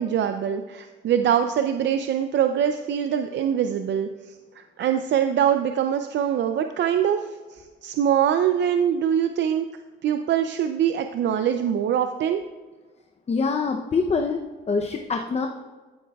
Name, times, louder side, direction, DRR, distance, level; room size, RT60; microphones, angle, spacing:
voice 1, 0.0-9.7 10.0-12.4, right 9 dB, 65° right, 7 dB, 0.5 m, -23 dB
voice 2, 13.3-15.5, left 4 dB, 30° left, 4 dB, 0.7 m, -25 dB
13.5 x 7.8 x 2.3 m, 1.3 s
cardioid pair, 90°, 20 cm